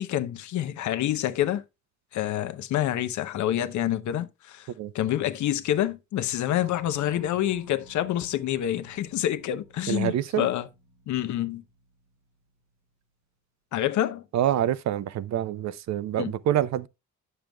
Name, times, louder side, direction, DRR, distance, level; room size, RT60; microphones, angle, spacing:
voice 1, 0.0-1.6 2.1-4.7 4.9-10.7 11.1-11.6 13.7-14.2 16.2-16.3, left 12 dB, 75° left, 0.8 m, -27 dB
sound 1, 6.6-12.9, right 3 dB, 90° right, 1.8 m, -53 dB
voice 2, 9.9-10.5 14.3-16.9, right 11 dB, 65° right, 0.6 m, -26 dB
9.0 x 6.6 x 2.2 m
cardioid pair, 90°, 30 cm